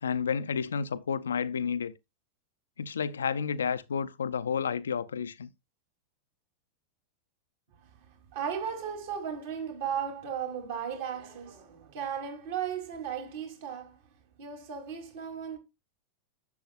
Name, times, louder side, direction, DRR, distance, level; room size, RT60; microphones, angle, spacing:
voice 1, 0.0-1.9 2.8-5.5, left 6 dB, 70° left, 0.6 m, -31 dB
voice 2, 7.8-14.0 14.4-15.6, right 8 dB, 55° right, 3.3 m, -36 dB
10.5 x 7.7 x 2.5 m
figure-of-eight pair, 90°, 0 cm